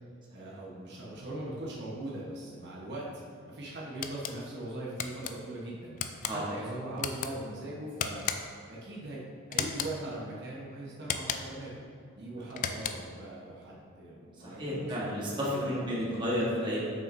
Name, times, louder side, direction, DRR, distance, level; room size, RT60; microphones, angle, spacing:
voice 1, 0.3-3.1 3.4-6.0 6.3-8.2 8.7-9.2 9.5-11.8 12.2-15.2 15.5-16.0, right 1 dB, 55° right, -5 dB, 1.1 m, -40 dB
sound 1, 4.0-4.4 5.0-5.3 6.0-6.4 7.0-7.3 8.0-8.6 9.5-10.0 11.0-11.6 12.5-13.2, left 7 dB, 35° left, 0.3 m, -35 dB
voice 2, 14.4-16.8, equal, 20° right, -6 dB, 1.3 m, -32 dB
7.9 x 6.1 x 2.6 m, 2.4 s
head